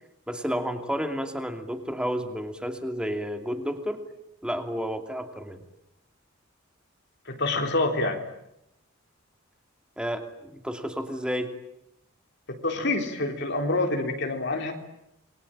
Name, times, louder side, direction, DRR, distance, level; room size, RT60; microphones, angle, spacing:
voice 1, 0.3-4.0 4.4-5.6 10.0-11.5, equal, 5° right, 6 dB, 2.8 m, -31 dB
voice 2, 7.3-8.2 12.5-14.7, left 2 dB, 55° left, 3 dB, 3.8 m, -27 dB
28.5 x 23.5 x 9.0 m, 0.83 s
head